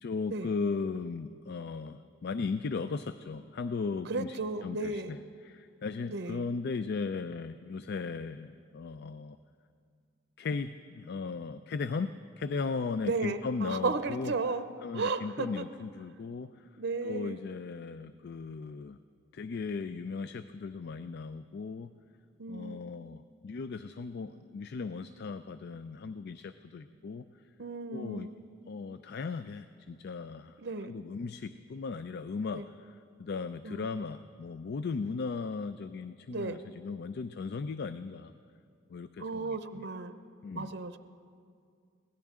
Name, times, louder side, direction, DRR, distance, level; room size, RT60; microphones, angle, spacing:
voice 1, 0.0-9.4 10.4-12.1 12.4-14.3 14.8-16.5 17.0-19.0 19.3-21.9 22.5-27.2 27.9-28.3 28.7-30.5 30.8-38.3 38.9-39.9 40.4-40.7, left 4 dB, 55° left, 12 dB, 0.4 m, -37 dB
voice 2, 4.1-5.2 6.1-6.4 13.0-14.7 14.9-15.6 16.8-17.4 22.4-22.9 27.6-28.4 30.6-30.9 32.5-32.6 33.6-33.9 36.3-36.6 39.2-40.2 40.5-41.0, right 3 dB, 60° right, 10 dB, 0.7 m, -34 dB
23.0 x 17.0 x 3.7 m, 2.3 s
head